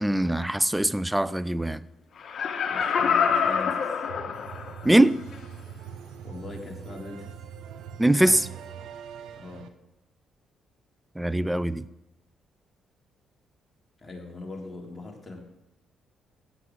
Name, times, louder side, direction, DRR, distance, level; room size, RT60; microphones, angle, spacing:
voice 1, 0.0-1.8 4.8-5.2 8.0-8.5 11.2-11.8, right 1 dB, 5° right, 0.5 m, -22 dB
Laughter, 2.2-4.9 5.3-5.4, left 6 dB, 55° left, 1.3 m, -26 dB
voice 2, 2.7-3.9 6.2-7.3 9.4-9.7 14.0-15.4, left 2 dB, 25° left, 3.2 m, -41 dB
sound 1, 4.1-9.7, right 8 dB, 85° right, 0.9 m, -42 dB
16.0 x 7.0 x 6.3 m
cardioid pair, 90°, 0 cm